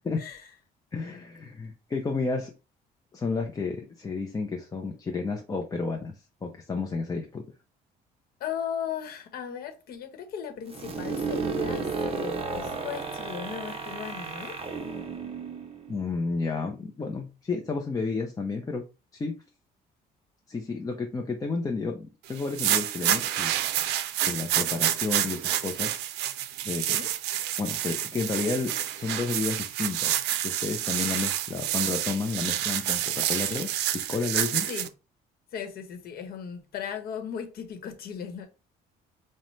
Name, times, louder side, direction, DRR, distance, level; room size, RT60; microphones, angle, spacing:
voice 1, 0.2-0.5 8.4-14.6 26.9-27.1 34.7-34.9 35.5-38.5, left 8 dB, 65° left, 1.0 m, -37 dB
voice 2, 0.9-2.5 3.1-7.4 15.9-18.8 19.1-19.3 20.5-23.8 24.3-26.0 26.6-26.8 27.6-34.7, left 4 dB, 20° left, 0.5 m, -31 dB
space engine, 10.7-16.4, right 4 dB, 35° right, 0.6 m, -33 dB
sound 1, 22.4-34.9, right 12 dB, 85° right, 0.4 m, -28 dB
5.3 x 2.1 x 3.1 m
cardioid pair, 110°, 17 cm